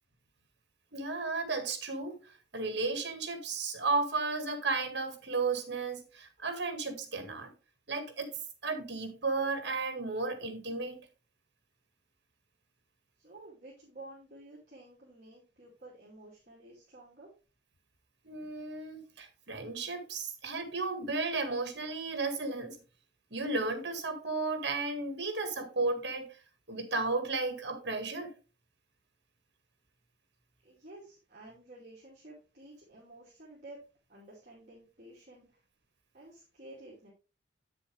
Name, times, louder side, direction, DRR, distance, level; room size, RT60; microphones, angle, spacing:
voice 1, 0.9-2.2 2.5-7.5 7.9-8.3 8.6-11.1 18.2-22.8 23.3-26.3 26.7-28.3, right 3 dB, 60° right, 1.9 m, -34 dB
voice 2, 13.2-17.3 30.6-33.8 34.1-35.5 36.1-37.1, right 2 dB, 40° right, 2.7 m, -52 dB
8.6 x 6.9 x 3.4 m
head